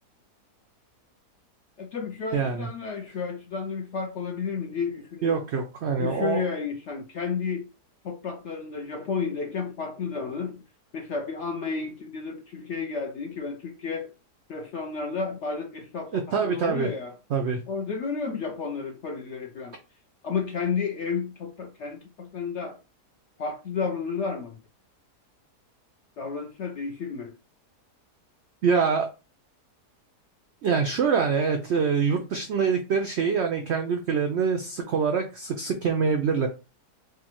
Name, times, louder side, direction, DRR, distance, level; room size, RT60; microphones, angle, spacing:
voice 1, 1.8-5.4 6.0-7.7 8.0-10.6 10.9-14.1 14.5-17.2 17.7-19.8 20.2-22.8 23.4-24.6 26.2-27.3, left 5 dB, 70° left, 0.6 m, -32 dB
voice 2, 2.3-2.7 5.2-6.4 16.1-16.9 17.3-17.6 28.6-29.1 30.6-36.5, right 6 dB, 85° right, 0.6 m, -25 dB
4.8 x 2.2 x 2.9 m
omnidirectional pair, 1.7 m